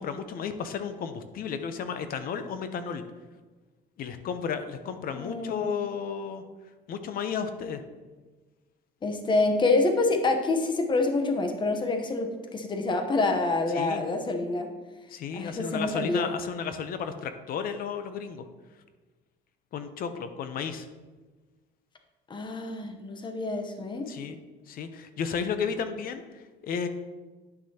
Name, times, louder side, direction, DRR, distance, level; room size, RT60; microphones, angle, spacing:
voice 1, 0.0-3.0 4.0-6.4 6.9-7.8 13.7-14.0 15.1-18.5 19.7-20.9 24.1-24.4 24.7-26.9, left 6 dB, 60° left, 9 dB, 0.7 m, -33 dB
voice 2, 5.1-5.7 9.0-14.7 15.3-16.3 22.3-24.1, left 3 dB, 30° left, 5 dB, 0.9 m, -27 dB
10.0 x 6.1 x 2.9 m, 1.3 s
cardioid pair, 110°, 17 cm